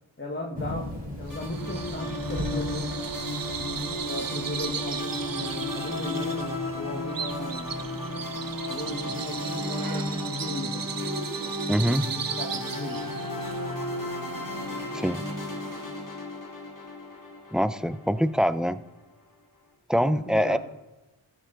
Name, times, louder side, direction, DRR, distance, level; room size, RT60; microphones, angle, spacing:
voice 1, 0.2-2.9 3.6-7.7 8.7-10.8 12.0-13.0 19.9-20.6, left 1 dB, 25° left, 1 dB, 1.4 m, -36 dB
Thunder / Rain, 0.5-10.2, equal, 20° right, 3.6 m, -41 dB
sound 1, 1.3-18.7, left 2 dB, 40° left, 2.5 m, -34 dB
Bird vocalization bird call bird song, 1.3-16.1, right 7 dB, 45° right, 0.6 m, -37 dB
voice 2, 11.7-12.1 14.9-15.2 17.5-18.8 19.9-20.6, equal, ahead, 14 dB, 0.4 m, -24 dB
13.0 x 6.9 x 3.8 m, 1.1 s
cardioid pair, 40°, 47 cm